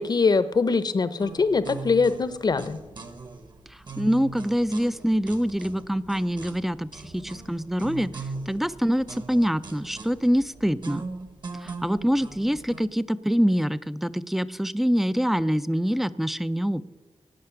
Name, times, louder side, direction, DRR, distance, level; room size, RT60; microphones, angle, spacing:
voice 1, 0.0-2.8, left 4 dB, 40° left, 13 dB, 0.7 m, -23 dB
sound 1, 1.2-12.8, right 3 dB, 45° right, 1.2 m, -40 dB
voice 2, 4.0-8.1 8.5-11.0 11.6-16.8, equal, ahead, 15 dB, 0.4 m, -25 dB
17.0 x 6.6 x 10.0 m, 1.2 s
wide cardioid pair, 175°, 11 cm